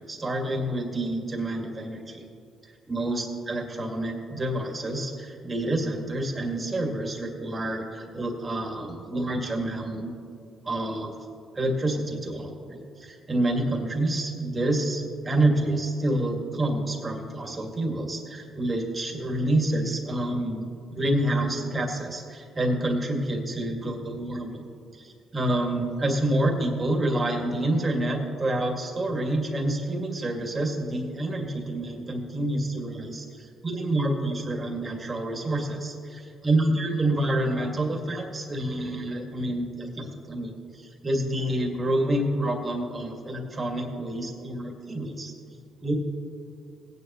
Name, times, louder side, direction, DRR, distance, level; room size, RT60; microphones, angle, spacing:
voice 1, 0.0-2.2 2.9-10.1 10.6-11.1 11.5-24.6 25.3-45.3 45.8-45.9, right 1 dB, 25° right, 1 dB, 2.0 m, -28 dB
17.5 x 9.7 x 3.0 m, 2.4 s
cardioid pair, 90°, 0 cm